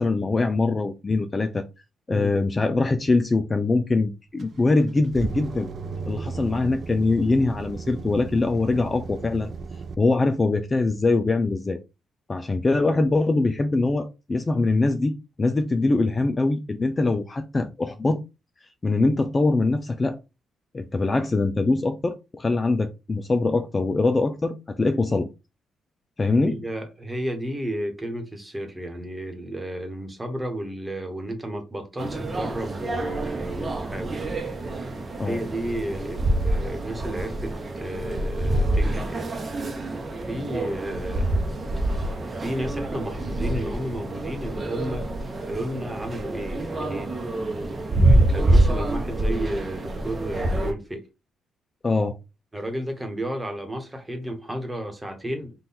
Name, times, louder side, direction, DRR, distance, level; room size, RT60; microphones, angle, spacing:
voice 1, 0.0-1.6 2.1-5.7 6.1-9.5 10.0-11.8 12.3-18.2 18.8-20.2 20.7-25.3 26.2-26.6 35.2-35.4 51.8-52.2, left 3 dB, 25° left, 0.4 m, -23 dB
sound 1, 4.4-9.9, right 4 dB, 50° right, 0.5 m, -35 dB
voice 2, 26.4-34.3 35.2-39.3 40.3-41.3 42.4-45.1 45.4-47.1 48.3-51.1 52.5-55.5, right 1 dB, 15° right, 1.2 m, -32 dB
sound 2, 32.0-50.7, right 1 dB, 30° right, 0.9 m, -26 dB
3.8 x 2.6 x 4.2 m
cardioid pair, 95°, 0 cm